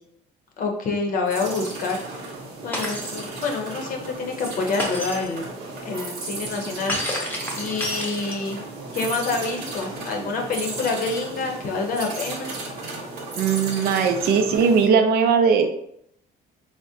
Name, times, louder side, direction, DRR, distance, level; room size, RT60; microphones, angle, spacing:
voice 1, 0.6-2.0 2.6-5.5 5.8-7.0 7.5-8.7 8.9-12.5, left 3 dB, 55° left, 2 dB, 0.7 m, -27 dB
sound 1, 1.3-14.9, right 3 dB, 80° right, 0.8 m, -35 dB
Shatter, 2.7-3.2 4.8-5.3 6.9-8.6, left 1 dB, 10° left, 0.7 m, -29 dB
voice 2, 13.4-15.7, right 6 dB, 65° right, 6 dB, 0.4 m, -19 dB
3.5 x 2.1 x 2.7 m, 0.75 s
cardioid pair, 110°, 17 cm